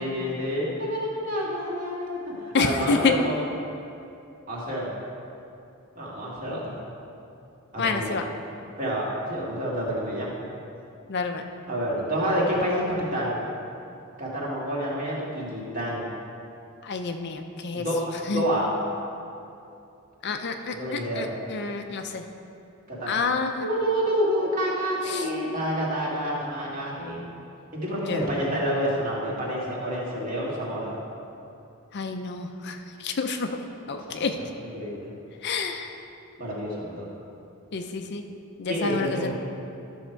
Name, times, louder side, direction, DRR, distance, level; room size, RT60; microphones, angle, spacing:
voice 1, 0.0-3.4 4.5-4.9 6.0-6.8 7.7-8.2 8.8-10.4 11.7-13.4 14.2-16.1 17.7-18.0 18.2-18.7 20.7-21.3 22.9-23.2 23.6-27.3 27.7-31.0 34.1-35.1 36.4-37.1 38.7-39.3, equal, 40° right, -5 dB, 2.1 m, -28 dB
voice 2, 2.5-3.1 7.8-8.2 11.1-11.4 16.8-17.8 18.3-18.4 20.2-22.2 23.1-23.7 25.1-25.2 28.1-28.3 31.9-33.5 33.9-34.3 35.4-35.9 37.7-38.2 38.6-39.3, left 4 dB, 50° left, 5 dB, 0.5 m, -28 dB
12.0 x 6.5 x 4.5 m, 2.7 s
head